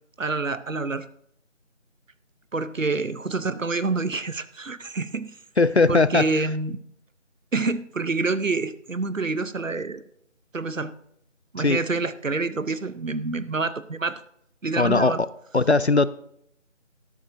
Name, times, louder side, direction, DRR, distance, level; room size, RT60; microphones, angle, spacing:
voice 1, 0.2-1.1 2.5-5.3 5.9-6.8 7.5-10.0 10.5-10.9 11.5-14.2 14.6-15.2, right 3 dB, 80° right, 0.9 m, -27 dB
voice 2, 5.6-6.5 11.6-11.8 14.8-15.1 15.5-16.1, left 3 dB, 60° left, 0.5 m, -19 dB
12.5 x 12.0 x 2.6 m
figure-of-eight pair, 170°, 38 cm